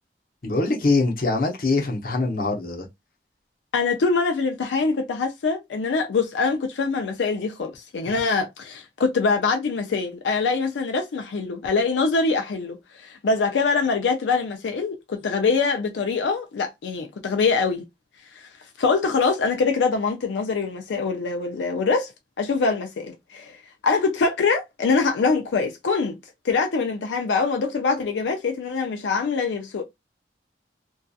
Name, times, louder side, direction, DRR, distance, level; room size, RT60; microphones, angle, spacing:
voice 1, 0.4-2.9, left 3 dB, 50° left, 0.7 m, -23 dB
voice 2, 3.7-17.9 18.3-18.5 18.8-22.1 22.4-23.6 23.8-26.2 26.4-29.8, left 4 dB, 85° left, 0.4 m, -24 dB
2.6 x 2.3 x 2.3 m
head